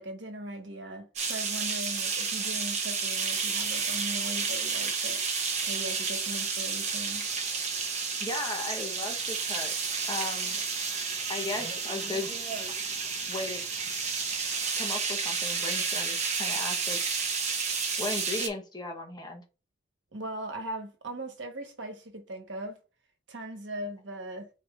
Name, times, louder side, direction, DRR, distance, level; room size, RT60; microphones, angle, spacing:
voice 1, 0.0-7.3 20.1-22.8 23.3-24.5, right 1 dB, 85° right, 1.2 m, -39 dB
sound 1, 1.2-18.5, right 5 dB, 40° right, 0.9 m, -31 dB
voice 2, 8.2-9.7 10.1-10.6 11.3-12.3 13.3-13.6 14.8-17.0 18.0-19.4, left 2 dB, 20° left, 1.0 m, -36 dB
4.3 x 3.4 x 3.5 m
head